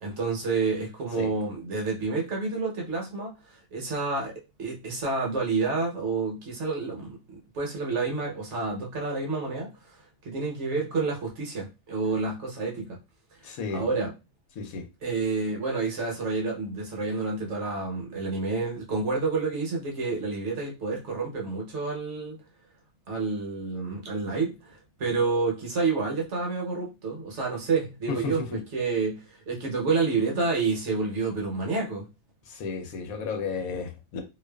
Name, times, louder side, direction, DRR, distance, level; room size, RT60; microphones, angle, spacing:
voice 1, 0.0-4.3 4.6-7.2 7.5-13.0 13.4-14.1 15.0-22.4 23.1-32.1, right 4 dB, 60° right, 1.0 m, -29 dB
voice 2, 13.4-13.8 14.6-14.8 28.1-28.6 32.5-34.2, left 5 dB, 90° left, 1.1 m, -33 dB
2.5 x 2.3 x 2.2 m
omnidirectional pair, 1.5 m